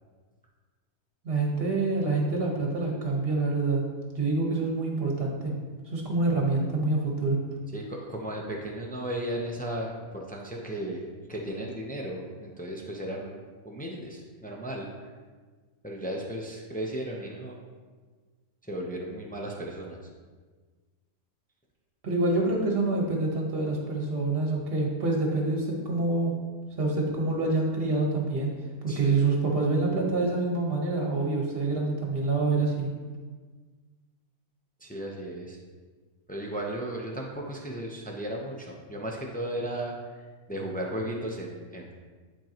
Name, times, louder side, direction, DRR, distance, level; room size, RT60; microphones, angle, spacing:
voice 1, 1.2-3.8 4.1-5.5 5.9-7.4 22.0-26.3 26.8-28.5 28.8-32.9, right 3 dB, 45° right, -1 dB, 1.4 m, -26 dB
voice 2, 7.7-13.4 13.6-14.9 15.8-17.6 18.7-20.0 28.9-29.3 34.8-35.6 36.3-39.9 40.5-41.9, right 1 dB, 10° left, -1 dB, 0.4 m, -35 dB
10.5 x 4.5 x 3.0 m, 1.4 s
omnidirectional pair, 1.5 m